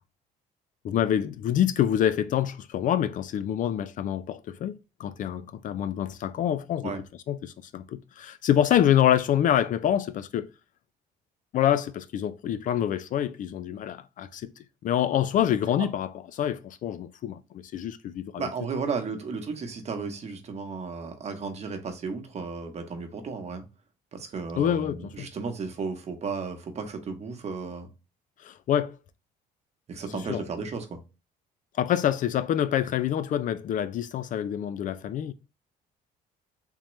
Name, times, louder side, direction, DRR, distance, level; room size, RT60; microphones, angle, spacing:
voice 1, 0.8-6.9 7.3-10.5 11.5-14.5 14.8-18.5 24.6-25.3 28.4-29.0 30.3-30.4 31.8-35.3, left 10 dB, 50° left, 0.4 m, -26 dB
voice 2, 18.4-23.6 24.1-27.9 29.9-31.0, right 4 dB, 40° right, 1.0 m, -34 dB
3.6 x 2.9 x 3.0 m
cardioid pair, 110°, 17 cm